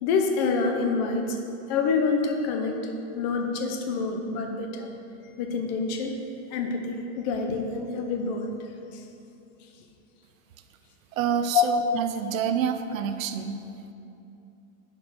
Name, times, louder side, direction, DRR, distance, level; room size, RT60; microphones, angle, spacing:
voice 1, 0.0-1.4 1.7-2.8 3.2-4.9 5.4-6.1 6.5-8.5 8.9-9.0 11.5-11.7, left 5 dB, 35° left, 4 dB, 0.6 m, -26 dB
voice 2, 11.1-13.6, right 8 dB, 75° right, 8 dB, 0.7 m, -28 dB
7.9 x 5.4 x 4.7 m, 2.8 s
supercardioid pair, 160°, 40 cm